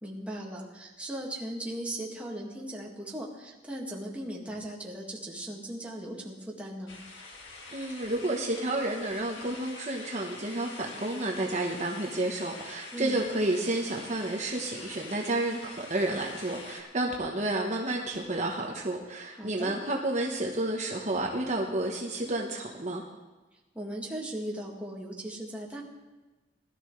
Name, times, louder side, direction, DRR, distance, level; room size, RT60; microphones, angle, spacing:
voice 1, 0.0-7.0 12.9-13.3 19.3-19.8 23.7-25.8, right 1 dB, 5° right, -3 dB, 2.0 m, -38 dB
sound 1, 6.9-16.8, left 3 dB, 85° left, 2.0 m, -46 dB
voice 2, 7.7-23.0, right 2 dB, 40° right, 0 dB, 1.1 m, -31 dB
20.5 x 12.5 x 3.3 m, 1.2 s
head